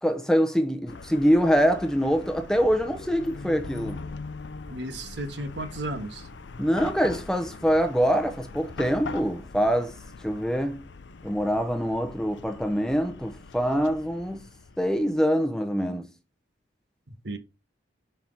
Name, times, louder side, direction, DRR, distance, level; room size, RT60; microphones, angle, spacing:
voice 1, 0.0-4.0 6.6-10.0 10.2-10.9 11.2-14.4 14.8-16.1, equal, 5° left, 0.7 m, -24 dB
Chatter / Car passing by / Traffic noise roadway noise, 0.9-15.2, left 4 dB, 75° left, 0.6 m, -42 dB
voice 2, 4.7-6.2 17.2-17.4, right 1 dB, 70° right, 1.2 m, -33 dB
5.8 x 4.5 x 5.4 m
head